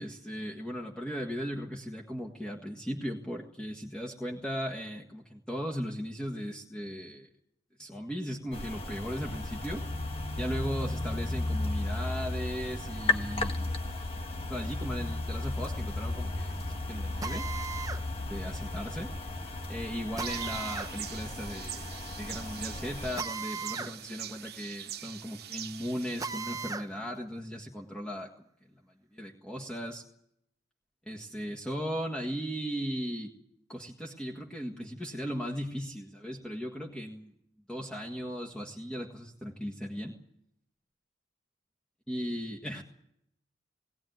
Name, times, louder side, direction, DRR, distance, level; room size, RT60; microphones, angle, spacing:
voice 1, 0.0-7.3 7.8-9.8 10.3-13.9 14.5-17.5 18.1-19.1 19.7-28.4 29.1-30.0 31.0-33.3 33.7-37.3 37.7-40.2 42.1-42.8, equal, 5° left, -1 dB, 1.7 m, -37 dB
sound 1, 8.5-23.2, left 2 dB, 30° left, 1.5 m, -34 dB
Drill, 17.2-18.0 20.2-20.9 23.2-23.9 24.3-24.4 26.2-26.9, right 5 dB, 20° right, 1.0 m, -37 dB
sound 2, 20.2-26.3, right 11 dB, 60° right, 1.1 m, -43 dB
19.5 x 18.5 x 9.4 m, 0.75 s
head